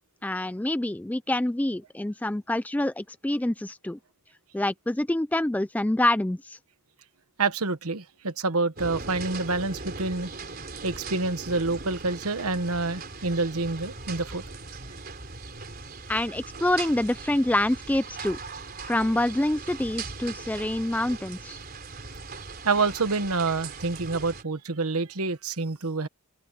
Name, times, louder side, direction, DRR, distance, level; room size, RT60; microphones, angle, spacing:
voice 1, 0.2-4.0 4.5-6.6 16.1-18.4 18.8-21.6, left 1 dB, 5° left, 0.3 m, -26 dB
voice 2, 7.4-10.3 10.8-14.4 22.6-26.1, right 3 dB, 80° right, 1.3 m, -27 dB
sound 1, 8.8-24.4, right 4 dB, 40° right, 4.1 m, -40 dB
head